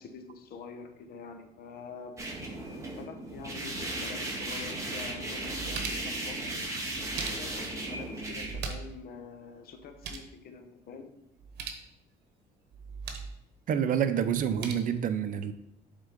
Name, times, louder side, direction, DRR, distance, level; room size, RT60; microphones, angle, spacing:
voice 1, 0.0-2.2 3.0-6.5 7.3-11.1, left 5 dB, 65° left, 1.0 m, -46 dB
sound 1, 2.2-8.5, right 2 dB, 20° right, 1.9 m, -36 dB
sound 2, 5.3-6.2 6.9-7.7 8.4-9.0 9.3-9.4 9.7-10.3 11.4-11.9 12.7-13.4 14.3-14.7, right 5 dB, 75° right, 1.0 m, -40 dB
voice 2, 13.7-15.5, right 8 dB, 55° right, 0.6 m, -28 dB
7.3 x 3.7 x 5.2 m
cardioid pair, 110°, 17 cm